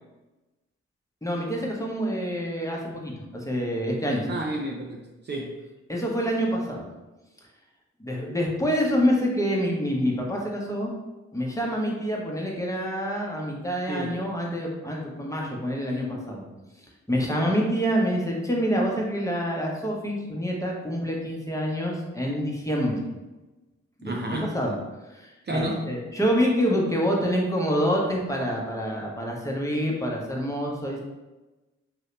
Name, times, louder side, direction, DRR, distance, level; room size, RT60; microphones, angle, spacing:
voice 1, 1.2-4.3 5.9-6.8 8.0-10.9 11.3-16.4 17.1-23.0 24.0-24.7 25.1-31.0, equal, 10° left, -2 dB, 0.9 m, -27 dB
voice 2, 4.3-5.6 13.9-14.2 24.0-24.5 25.5-25.8, right 1 dB, 35° right, 0 dB, 0.5 m, -31 dB
2.8 x 2.7 x 3.2 m, 1.1 s
supercardioid pair, 50°, 30 cm